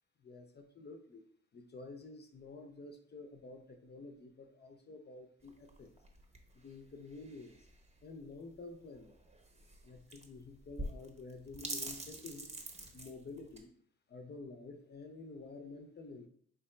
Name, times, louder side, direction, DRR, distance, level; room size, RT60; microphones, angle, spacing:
voice 1, 0.2-1.3 1.5-5.9 6.5-7.7 8.0-9.2 9.8-12.5 12.9-13.7 14.1-16.3, left 3 dB, 35° left, 5 dB, 0.6 m, -50 dB
sound 1, 5.4-13.6, right 1 dB, 20° right, 0.8 m, -47 dB
4.6 x 2.9 x 3.2 m, 0.64 s
cardioid pair, 90°, 30 cm